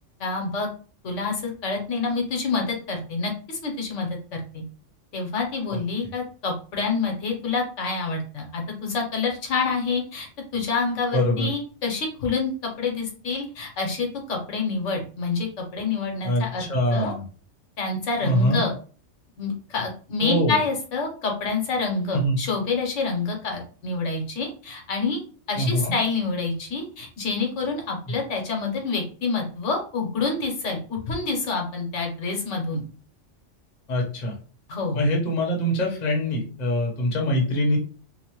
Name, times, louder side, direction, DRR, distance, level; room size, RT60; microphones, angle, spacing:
voice 1, 0.2-0.7 1.0-4.6 5.1-12.5 12.8-15.5 15.7-17.1 17.8-18.7 19.4-25.2 25.5-32.8 34.7-35.0, left 4 dB, 75° left, 2 dB, 1.1 m, -27 dB
voice 2, 11.1-11.5 16.2-17.2 18.2-18.6 20.2-20.6 22.1-22.4 25.6-25.9 33.9-34.4 34.9-37.8, equal, 40° left, 0 dB, 0.7 m, -23 dB
2.9 x 2.0 x 2.9 m, 0.39 s
omnidirectional pair, 1.3 m